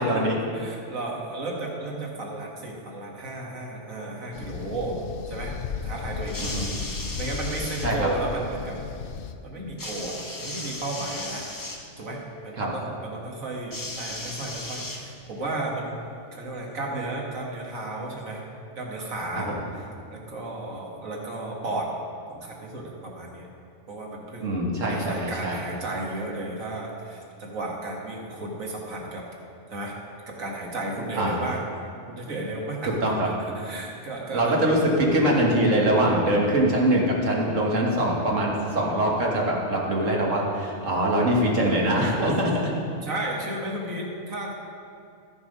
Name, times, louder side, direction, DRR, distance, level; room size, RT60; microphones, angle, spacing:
voice 1, 0.0-0.4 6.4-6.7 7.8-8.1 12.6-12.7 19.4-19.6 24.4-25.6 31.2-31.4 33.0-33.3 34.3-42.7, right 1 dB, 70° right, -2 dB, 1.9 m, -23 dB
voice 2, 0.5-5.0 5.3-5.5 5.8-6.6 7.2-8.8 9.4-11.6 12.0-16.0 16.3-18.4 18.8-21.9 22.3-23.5 23.9-24.4 24.8-29.2 29.7-30.0 30.3-31.6 32.1-32.9 33.5-34.6 43.0-44.5, right 2 dB, 85° right, -1 dB, 2.0 m, -33 dB
sound 1, 4.3-9.3, left 6 dB, 60° left, 0.6 m, -35 dB
sound 2, 6.2-7.9 9.8-11.8 13.7-15.4 16.4-16.5, left 2 dB, 20° left, 0.7 m, -36 dB
12.0 x 7.2 x 5.3 m, 2.4 s
omnidirectional pair, 1.4 m